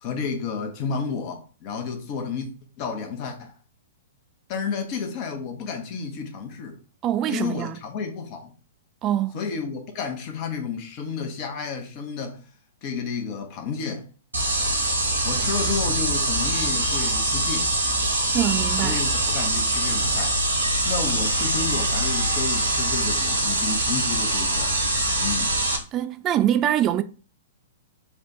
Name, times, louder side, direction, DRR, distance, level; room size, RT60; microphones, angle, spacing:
voice 1, 0.0-2.5 2.8-3.5 4.5-6.8 7.3-8.5 9.3-12.4 12.8-14.1 15.2-17.7 18.8-20.4 20.8-24.7 25.2-25.6, left 5 dB, 35° left, 0.9 m, -31 dB
voice 2, 7.0-7.8 9.0-9.4 18.3-19.0 25.9-27.0, right 11 dB, 25° right, 0.3 m, -23 dB
sound 1, 14.3-25.8, right 1 dB, 75° right, 1.1 m, -23 dB
3.5 x 2.4 x 4.2 m
figure-of-eight pair, 110°, 0 cm